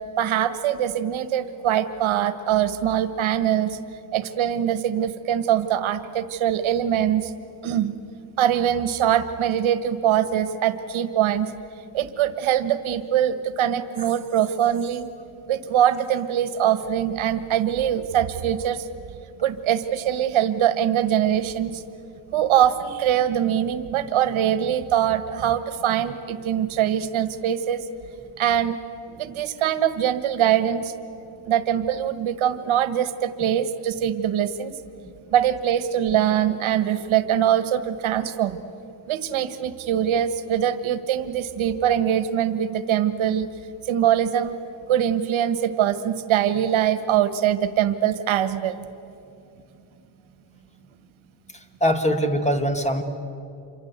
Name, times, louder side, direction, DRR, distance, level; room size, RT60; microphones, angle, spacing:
voice 1, 0.2-3.8 4.1-7.3 7.6-7.9 8.4-11.5 11.9-15.1 15.5-18.9 19.4-21.8 22.3-27.9 28.4-28.8 29.2-30.9 31.4-34.8 35.3-38.6 39.1-43.5 43.8-44.6 44.9-48.9, right 10 dB, 70° right, 12 dB, 1.5 m, -23 dB
voice 2, 51.5-53.0, equal, 15° left, 7 dB, 2.1 m, -23 dB
27.5 x 24.5 x 8.2 m, 2.6 s
cardioid pair, 115°, 50 cm